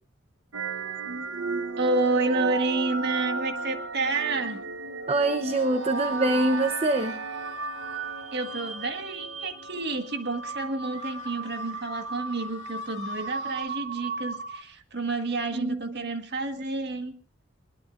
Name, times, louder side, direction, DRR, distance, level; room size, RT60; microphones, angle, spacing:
sound 1, 0.5-14.6, right 4 dB, 85° right, 1.1 m, -34 dB
voice 1, 1.8-4.6 8.3-17.1, right 3 dB, 55° right, 6 dB, 1.6 m, -29 dB
voice 2, 5.1-7.2 15.5-16.0, right 2 dB, 30° right, 8 dB, 0.9 m, -25 dB
sound 2, 5.5-8.9 9.4-9.5 9.8-9.9 10.8-13.6, left 5 dB, 35° left, 3.4 m, -50 dB
21.5 x 21.0 x 2.6 m, 0.38 s
head